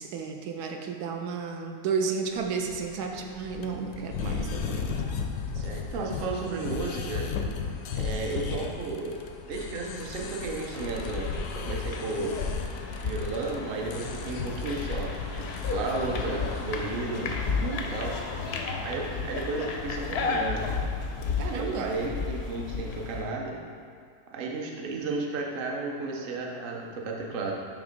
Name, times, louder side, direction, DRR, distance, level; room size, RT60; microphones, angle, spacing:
voice 1, 0.0-4.9 5.5-5.7 17.6-18.0 21.4-22.0, right 5 dB, 80° right, 3 dB, 1.1 m, -32 dB
sound 1, 2.3-17.0, left 5 dB, 90° left, 1.1 m, -36 dB
voice 2, 5.6-7.3 7.9-9.2 9.5-12.4 13.0-17.3 17.9-18.2 18.8-20.7 21.5-23.6 24.3-27.5, right 3 dB, 50° right, -1 dB, 0.7 m, -33 dB
sound 2, 10.7-23.3, left 4 dB, 65° left, 0.6 m, -33 dB
7.0 x 3.2 x 5.1 m, 2.3 s
omnidirectional pair, 1.7 m